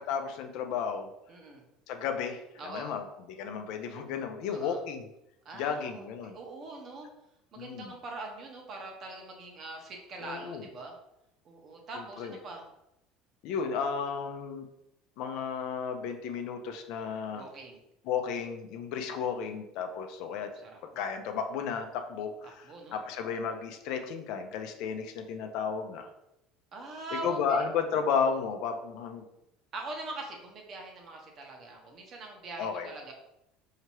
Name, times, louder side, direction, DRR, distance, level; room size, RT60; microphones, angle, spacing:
voice 1, 0.0-1.1 1.9-5.1 5.5-6.4 7.6-7.9 10.2-10.6 12.2-12.4 13.4-14.7 15.2-17.4 18.1-20.5 21.0-26.1 27.1-29.2 32.6-32.9, left 6 dB, 65° left, 6 dB, 0.5 m, -33 dB
voice 2, 1.3-1.6 2.6-2.9 4.5-4.8 5.4-7.1 7.5-10.9 11.4-12.7 17.3-17.8 20.6-21.0 22.6-23.0 26.7-27.6 29.7-33.1, right 2 dB, 40° right, 1 dB, 1.0 m, -43 dB
4.5 x 2.8 x 3.0 m, 0.85 s
supercardioid pair, 120°, 0 cm